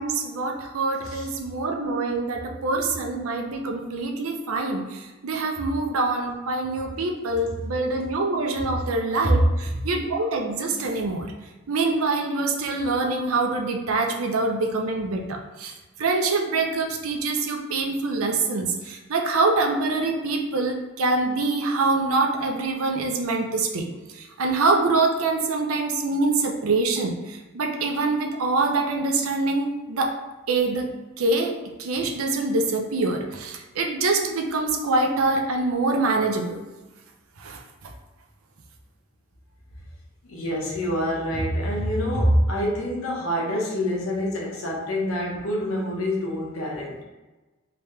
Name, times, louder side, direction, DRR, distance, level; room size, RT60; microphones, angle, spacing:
voice 1, 0.0-11.3 11.7-23.9 24.1-30.1 30.5-31.5 31.8-36.6 37.4-37.9, right 3 dB, 90° right, 3 dB, 0.6 m, -25 dB
voice 2, 40.2-47.0, equal, 90° left, -3 dB, 1.1 m, -26 dB
3.5 x 2.9 x 3.2 m, 1.2 s
head